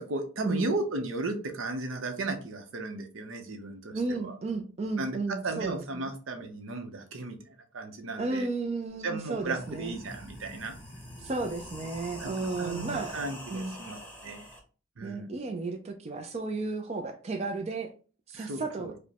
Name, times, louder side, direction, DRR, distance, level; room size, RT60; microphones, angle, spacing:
voice 1, 0.0-4.3 5.0-8.5 9.0-10.8 12.2-14.5 15.0-15.3 18.3-18.9, right 2 dB, 75° right, 6 dB, 0.7 m, -35 dB
voice 2, 3.9-6.1 8.2-10.0 11.2-13.2 13.5-13.7 15.0-17.9 18.3-18.9, right 3 dB, 30° right, 4 dB, 0.4 m, -33 dB
sound 1, 8.9-9.0 9.3-14.6, equal, 10° left, 0.9 m, -45 dB
5.0 x 2.1 x 2.8 m, 0.37 s
head